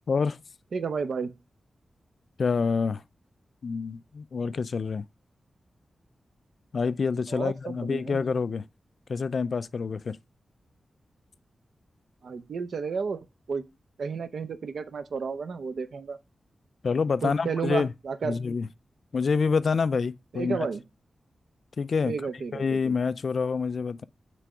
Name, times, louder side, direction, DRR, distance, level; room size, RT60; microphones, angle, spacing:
voice 1, 0.1-0.4 2.4-3.0 3.6-5.0 6.7-8.6 9.1-10.2 16.8-17.9 18.2-18.7 19.1-20.7 21.8-22.3 22.5-24.0, left 5 dB, 55° left, 0.3 m, -27 dB
voice 2, 0.7-1.3 7.3-8.2 12.2-13.2 13.5-13.6 14.0-16.2 17.2-18.4 20.3-20.8 22.1-22.8, right 5 dB, 70° right, 0.7 m, -32 dB
7.6 x 3.4 x 4.9 m
wide cardioid pair, 140°, 0 cm